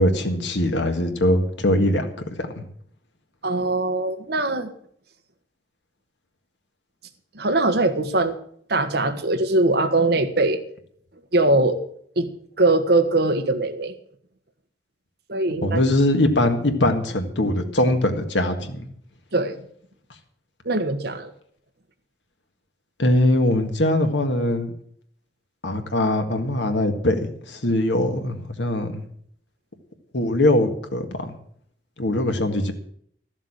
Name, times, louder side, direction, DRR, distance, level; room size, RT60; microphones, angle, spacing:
voice 1, 0.0-2.3 2.6-2.7 15.6-18.8 23.0-24.7 25.6-27.2 27.5-29.1 30.1-31.3 32.0-32.7, left 1 dB, 90° left, 6 dB, 1.8 m, -21 dB
voice 2, 3.4-4.7 7.3-8.3 8.7-10.6 11.3-11.8 12.1-13.9 15.3-15.8 19.3-19.6 20.6-21.3, right 2 dB, 60° right, 7 dB, 1.4 m, -21 dB
13.5 x 7.3 x 8.6 m, 0.64 s
head